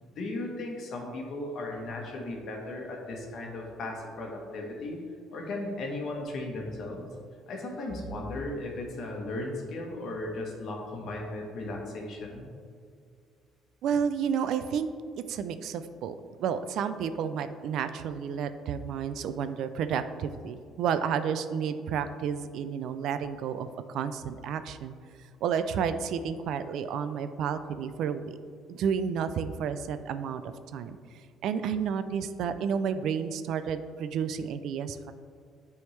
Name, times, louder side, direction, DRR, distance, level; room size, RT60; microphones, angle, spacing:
voice 1, 0.0-5.0 5.3-7.1 7.5-12.5, left 2 dB, 50° left, 1 dB, 1.1 m, -36 dB
voice 2, 13.8-14.9 15.2-25.0 25.4-28.4 28.7-30.4 30.7-31.0 31.4-35.1, right 7 dB, 65° right, 11 dB, 0.3 m, -31 dB
9.0 x 3.5 x 3.2 m, 2.1 s
cardioid pair, 135°, 0 cm